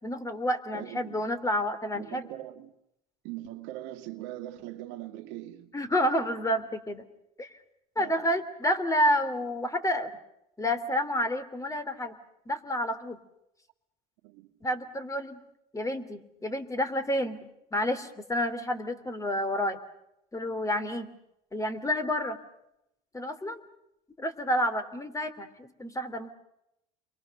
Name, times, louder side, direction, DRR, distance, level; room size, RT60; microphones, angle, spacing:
voice 1, 0.0-2.3 5.7-7.0 7.4-7.5 8.0-10.1 10.6-12.2 12.5-13.2 14.6-15.4 15.7-17.4 17.7-19.8 20.3-21.1 21.5-22.4 23.1-23.6 24.2-26.3, equal, 15° left, 3.0 m, -29 dB
voice 2, 0.7-1.2 1.9-2.7 3.2-5.8 8.0-8.3 14.2-14.5, right 14 dB, 65° right, 2.1 m, -41 dB
29.5 x 23.0 x 6.6 m
hypercardioid pair, 90°, 21 cm